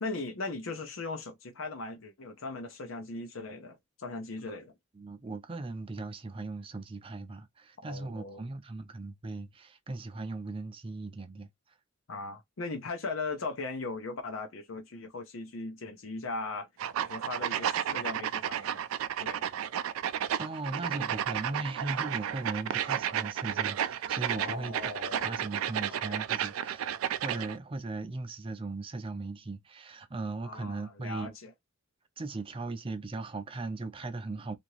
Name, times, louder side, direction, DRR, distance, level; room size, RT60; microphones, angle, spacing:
voice 1, 0.0-4.7 7.9-8.5 12.1-16.7 17.0-18.8 19.2-19.6 24.4-25.3 25.9-26.2 30.4-31.5, left 3 dB, 75° left, 0.7 m, -38 dB
voice 2, 4.9-11.5 20.4-24.9 25.2-26.9 27.2-31.4 32.2-34.6, right 3 dB, 25° right, 0.5 m, -38 dB
sound 1, 16.8-27.6, right 10 dB, 85° right, 0.3 m, -32 dB
2.8 x 2.6 x 3.0 m
head